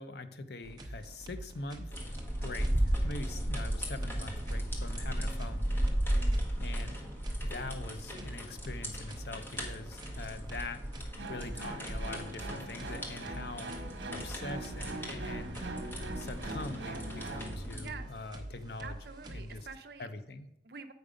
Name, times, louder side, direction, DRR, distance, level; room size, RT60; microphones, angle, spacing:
voice 1, 0.0-1.9 2.4-5.7 6.6-7.0 7.4-10.8 11.3-13.7 14.1-15.6 16.1-19.0 19.3-19.7 20.0-20.5, left 2 dB, 60° left, 10 dB, 0.6 m, -43 dB
sound 1, 0.6-20.1, right 1 dB, 20° right, 0.7 m, -46 dB
sound 2, 1.9-17.8, equal, 10° left, 1.0 m, -35 dB
voice 2, 6.1-6.5 17.8-18.1 18.8-20.1 20.6-20.9, right 5 dB, 60° right, 8 dB, 0.6 m, -47 dB
sound 3, 11.2-17.6, right 2 dB, 80° right, 1.0 m, -42 dB
7.9 x 5.1 x 5.0 m, 0.82 s
head